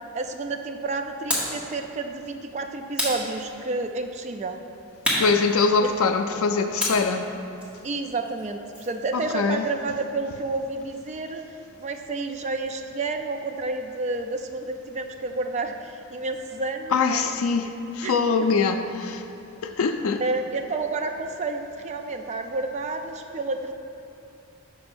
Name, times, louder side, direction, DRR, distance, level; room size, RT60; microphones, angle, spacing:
voice 1, 0.1-4.6 5.8-5.9 7.8-11.4 11.8-17.4 18.0-18.2 20.2-23.7, right 3 dB, 30° right, 0.3 m, -30 dB
sound 1, 1.3-1.6 2.9-3.9 5.0-6.2 6.8-9.0, equal, 5° right, 1.0 m, -30 dB
voice 2, 5.2-7.3 9.1-9.7 16.9-19.2 19.6-20.2, left 4 dB, 80° left, 0.4 m, -23 dB
5.5 x 4.3 x 6.0 m
head